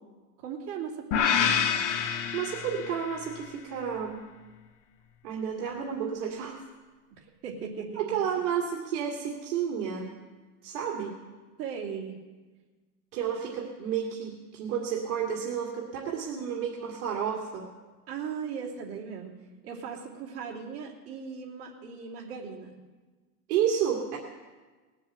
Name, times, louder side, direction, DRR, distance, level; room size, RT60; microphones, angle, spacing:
voice 1, 0.4-1.6 7.2-7.9 11.6-12.2 18.1-19.3 19.6-22.8, right 6 dB, 30° right, -4 dB, 2.8 m, -38 dB
sound 1, 1.1-3.3, left 8 dB, 45° left, 1.1 m, -27 dB
voice 2, 2.3-4.2 5.2-6.6 7.9-10.1 10.6-11.2 13.1-17.7 23.5-24.2, right 8 dB, 45° right, -2 dB, 2.1 m, -31 dB
19.5 x 7.6 x 7.8 m, 1.3 s
supercardioid pair, 165°, 49 cm